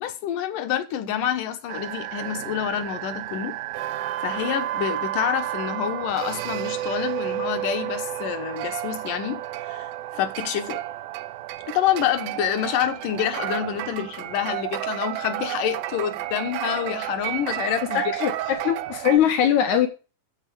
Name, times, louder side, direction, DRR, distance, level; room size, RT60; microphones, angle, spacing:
voice 1, 0.0-3.6 4.2-9.9 10.2-10.8 11.7-18.0, left 10 dB, 85° left, 2.9 m, -27 dB
sound 1, 1.7-19.2, right 14 dB, 85° right, 2.3 m, -31 dB
voice 2, 17.9-19.9, left 9 dB, 70° left, 2.6 m, -21 dB
9.0 x 8.0 x 6.1 m
omnidirectional pair, 3.6 m